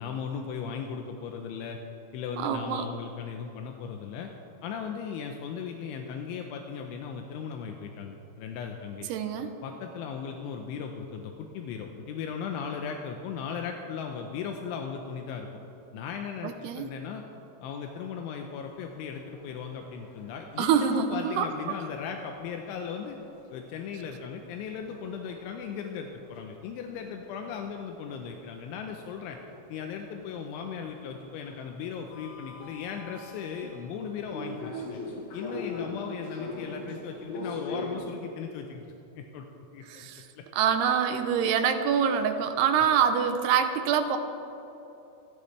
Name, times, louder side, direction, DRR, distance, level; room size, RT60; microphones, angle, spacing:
voice 1, 0.0-1.8 2.1-4.3 4.6-9.1 9.6-15.6 15.9-17.2 17.6-23.2 23.5-29.4 29.7-35.0 35.3-38.9 39.2-39.5 39.7-40.1, left 6 dB, 85° left, 3 dB, 3.2 m, -37 dB
voice 2, 2.4-2.9 9.1-9.6 16.4-16.9 20.6-21.5 34.7-34.9 39.9-40.2 40.5-44.2, right 7 dB, 80° right, 7 dB, 2.4 m, -25 dB
sound 1, 18.5-38.0, left 2 dB, 60° left, 3.6 m, -44 dB
27.0 x 12.0 x 3.3 m, 3.0 s
omnidirectional pair, 5.4 m